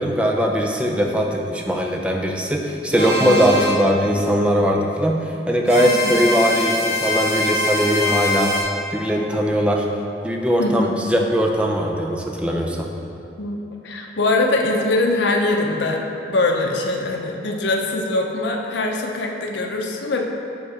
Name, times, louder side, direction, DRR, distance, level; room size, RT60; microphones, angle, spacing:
voice 1, 0.0-8.5 8.9-9.9 10.2-12.9, equal, 5° right, 1 dB, 0.4 m, -20 dB
sound 1, 3.0-3.7 5.7-8.6, left 1 dB, 55° right, 1.2 m, -23 dB
voice 2, 5.8-6.2 10.6-11.0 13.4-16.0 16.3-20.2, left 2 dB, 80° left, 1 dB, 0.7 m, -22 dB
5.2 x 5.0 x 4.9 m, 2.7 s
head